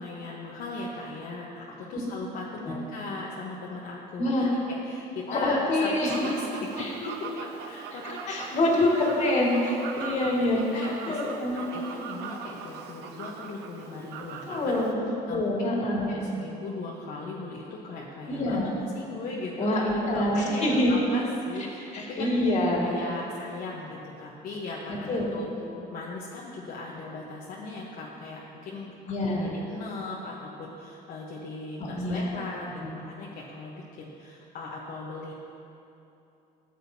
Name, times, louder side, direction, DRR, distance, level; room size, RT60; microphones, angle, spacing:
voice 1, 0.0-8.6 8.9-9.1 9.9-10.1 10.4-11.2 11.5-14.8 15.3-15.5 15.8-19.8 20.1-25.5 25.9-32.7 32.9-35.3, left 3 dB, 65° left, -4 dB, 1.0 m, -38 dB
voice 2, 4.2-4.5 5.3-6.2 6.8-6.9 8.3-11.6 14.4-14.9 15.3-16.1 18.3-18.7 19.6-20.9 21.9-22.9 25.1-25.3 25.6-25.7 29.1-29.5 31.8-32.2 32.8-32.9, left 1 dB, 45° left, -2 dB, 2.0 m, -26 dB
Fowl, 6.1-14.9, right 6 dB, 80° right, 0.6 m, -41 dB
13.5 x 7.9 x 2.8 m, 2.8 s
cardioid pair, 110°, 17 cm